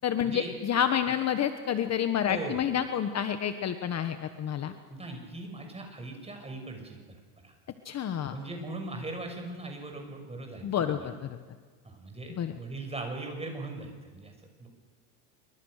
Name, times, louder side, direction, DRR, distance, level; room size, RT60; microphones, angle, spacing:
voice 1, 0.0-4.7 7.8-8.4 10.6-11.4 12.4-12.5, left 9 dB, 35° left, 8 dB, 1.4 m, -29 dB
voice 2, 2.3-2.6 4.9-7.5 8.3-11.1 11.8-14.3 14.6-14.7, right 2 dB, 15° right, 4 dB, 6.6 m, -39 dB
26.5 x 24.5 x 6.6 m, 1.5 s
supercardioid pair, 120°, 47 cm